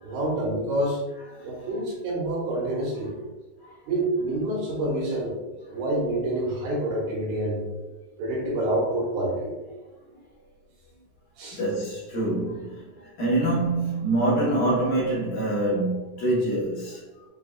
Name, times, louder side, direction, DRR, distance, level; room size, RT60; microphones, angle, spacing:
voice 1, 0.0-1.0 1.4-3.2 3.9-5.3 5.7-7.6 8.2-9.5 11.4-11.6, right 1 dB, 80° right, -4 dB, 2.8 m, -27 dB
voice 2, 11.6-17.0, right 2 dB, 65° left, -9 dB, 2.2 m, -25 dB
6.3 x 2.5 x 2.3 m, 1.2 s
omnidirectional pair, 4.3 m